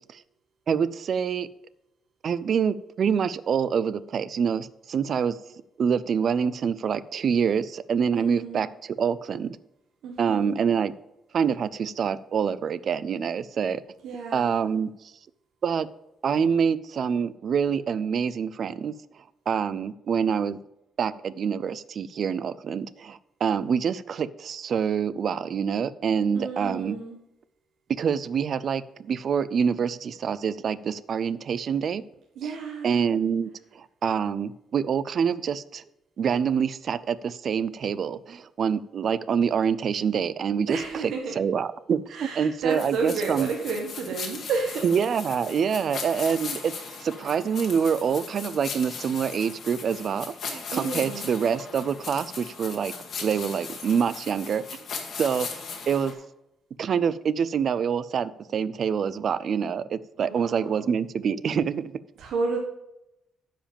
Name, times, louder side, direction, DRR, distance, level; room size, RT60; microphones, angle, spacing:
voice 1, 0.7-1.5 2.2-5.4 5.8-9.6 10.2-10.9 11.3-13.8 14.3-14.9 15.6-15.9 16.2-18.9 19.5-20.6 21.0-27.0 27.9-32.0 32.4-32.5 32.8-35.8 36.2-43.5 44.8-46.7 47.0-52.9 53.2-54.8 55.2-55.5 55.9-56.1 56.8-61.9, right 7 dB, 45° right, 17 dB, 0.4 m, -26 dB
voice 2, 8.1-8.6 10.0-10.6 14.0-14.8 26.3-27.2 32.4-33.0 40.7-41.4 42.1-44.9 50.7-51.3 60.2-60.9 62.2-62.6, right 4 dB, 80° right, 1 dB, 1.1 m, -31 dB
sound 1, 42.7-56.1, left 5 dB, 45° left, 1.8 m, -38 dB
10.0 x 5.2 x 7.0 m, 0.88 s
cardioid pair, 170°, 0 cm